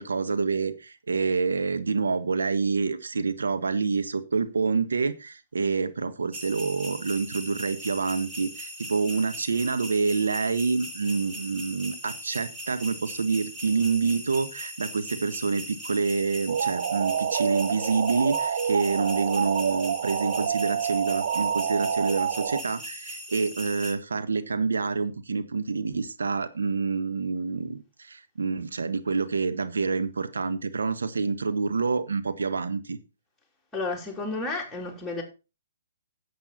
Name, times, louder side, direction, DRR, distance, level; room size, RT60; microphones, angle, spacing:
voice 1, 0.0-33.0, right 4 dB, 75° right, 1.5 m, -27 dB
sound 1, 6.3-23.9, equal, 15° right, 3.2 m, -40 dB
sound 2, 16.5-22.6, right 7 dB, 60° right, 0.9 m, -28 dB
voice 2, 33.7-35.2, left 3 dB, 5° left, 3.6 m, -31 dB
12.0 x 7.8 x 4.2 m
figure-of-eight pair, 130°, 0 cm